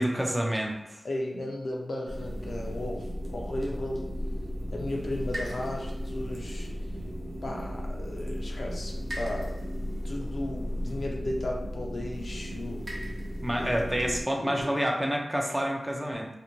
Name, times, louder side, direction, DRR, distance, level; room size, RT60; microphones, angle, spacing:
voice 1, 0.0-1.0 13.4-16.3, equal, 15° right, 1 dB, 0.4 m, -28 dB
voice 2, 1.0-3.1 3.3-4.1 4.7-6.7 7.4-13.0 13.6-13.7 14.0-14.7, left 1 dB, 75° left, -1 dB, 0.5 m, -35 dB
sound 1, 2.1-14.2, equal, 70° right, 0.6 m, -35 dB
2.5 x 2.1 x 2.9 m, 0.88 s
wide cardioid pair, 65°, 0 cm